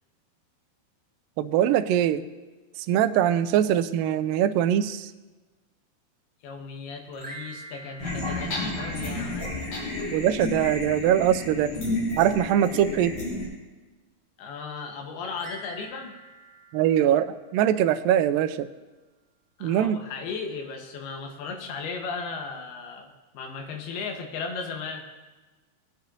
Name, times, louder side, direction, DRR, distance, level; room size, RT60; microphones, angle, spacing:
voice 1, 1.4-2.2 2.9-5.1 10.1-11.7 12.2-13.2 16.7-18.7 19.6-20.0, right 10 dB, 90° right, 9 dB, 1.9 m, -22 dB
voice 2, 6.4-9.6 14.4-16.2 19.6-25.0, left 4 dB, 80° left, 3 dB, 3.1 m, -36 dB
sound 1, 7.1-9.6 15.3-17.9, right 2 dB, 30° right, 1.8 m, -46 dB
sound 2, 8.0-13.5, left 2 dB, 40° left, 4.6 m, -31 dB
19.5 x 9.3 x 2.7 m, 1.2 s
omnidirectional pair, 4.6 m